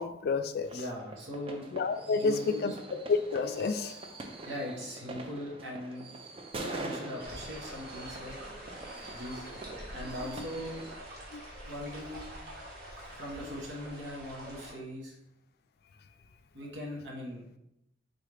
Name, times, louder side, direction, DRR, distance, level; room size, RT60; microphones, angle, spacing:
voice 1, 0.0-0.7 1.7-4.2 10.2-10.5 11.3-11.4, left 4 dB, 55° left, 9 dB, 0.3 m, -30 dB
sound 1, 0.6-11.0, right 2 dB, 30° right, 0.4 m, -44 dB
voice 2, 0.7-1.6 2.1-2.7 4.4-6.1 6.6-8.3 9.1-9.5 9.9-10.8 11.6-12.3 13.1-15.1 16.5-17.5, left 1 dB, 85° right, -1 dB, 1.1 m, -40 dB
sound 2, 7.2-14.7, right 1 dB, 55° right, 1.3 m, -45 dB
4.0 x 3.6 x 3.3 m, 0.81 s
head